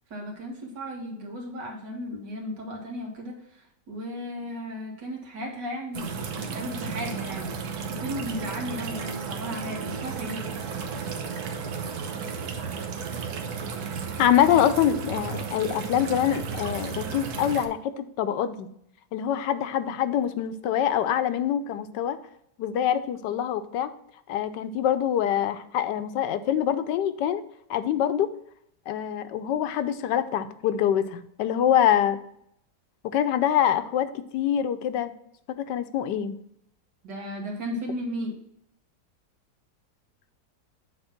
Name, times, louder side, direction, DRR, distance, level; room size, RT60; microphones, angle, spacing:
voice 1, 0.1-7.5 7.9-10.5 37.0-38.4, equal, 85° right, 0 dB, 2.3 m, -35 dB
sound 1, 5.9-17.7, right 6 dB, 70° right, 1.3 m, -34 dB
voice 2, 14.2-18.7 19.1-22.2 22.6-23.9 24.3-27.4 27.7-28.3 28.9-32.2 33.1-35.1 35.6-36.4, left 10 dB, 90° left, 11 dB, 1.3 m, -25 dB
7.9 x 3.3 x 5.8 m, 0.73 s
omnidirectional pair, 1.8 m